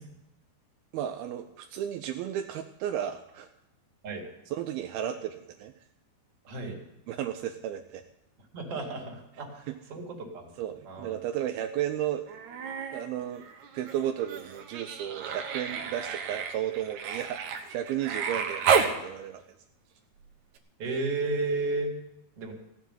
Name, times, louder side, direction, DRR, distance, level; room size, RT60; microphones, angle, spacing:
voice 1, 0.9-3.5 4.5-5.8 7.1-8.0 9.7-9.8 10.6-12.4 12.9-13.5 13.7-17.4 17.7-19.6, right 11 dB, 80° right, 6 dB, 2.5 m, -34 dB
voice 2, 6.4-6.8 8.5-10.5 10.8-11.2 20.8-21.9 22.4-22.5, right 3 dB, 45° right, 0 dB, 3.0 m, -33 dB
Human voice, 12.3-13.0 13.4-19.0 20.6-20.7, right 6 dB, 65° right, 2.2 m, -31 dB
16.0 x 7.1 x 9.2 m, 0.87 s
omnidirectional pair, 4.4 m